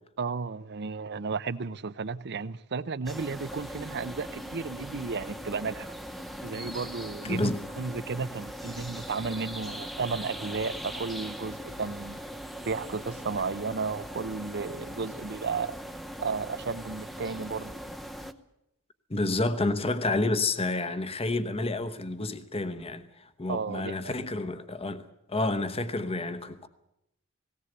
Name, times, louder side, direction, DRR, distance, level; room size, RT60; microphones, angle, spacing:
voice 1, 0.2-5.9 6.4-12.2 12.7-15.8 16.2-17.8 23.5-24.1, right 4 dB, 55° right, 0.7 m, -33 dB
sound 1, 3.1-18.3, equal, ahead, 0.8 m, -40 dB
voice 2, 7.2-7.6 19.1-23.1 23.4-25.0 25.3-26.7, left 2 dB, 30° left, 1.1 m, -29 dB
18.0 x 18.0 x 8.1 m
head